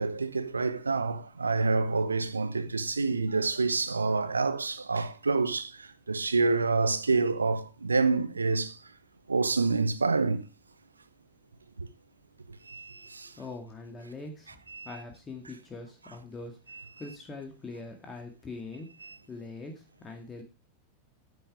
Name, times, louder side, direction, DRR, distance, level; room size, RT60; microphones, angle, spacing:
voice 1, 0.0-8.8 9.3-10.4 11.8-11.9 12.7-13.3 14.7-14.9 16.7-16.8 19.0-19.2, right 3 dB, 75° right, 0.8 m, -27 dB
voice 2, 13.4-14.6 14.8-18.9 19.3-20.4, left 3 dB, 20° left, 2.1 m, -42 dB
10.0 x 8.0 x 4.8 m
figure-of-eight pair, 90°, 0 cm